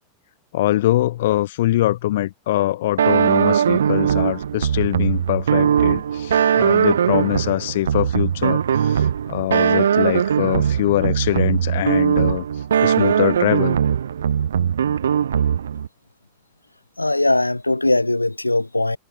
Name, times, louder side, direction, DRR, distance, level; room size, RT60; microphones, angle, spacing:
voice 1, 0.5-12.4 12.8-13.8, left 14 dB, 55° left, 2.9 m, -23 dB
sound 1, 3.0-15.9, right 8 dB, 65° right, 1.3 m, -20 dB
voice 2, 17.0-19.0, left 2 dB, 85° left, 3.6 m, -20 dB
figure-of-eight pair, 90°, 0 cm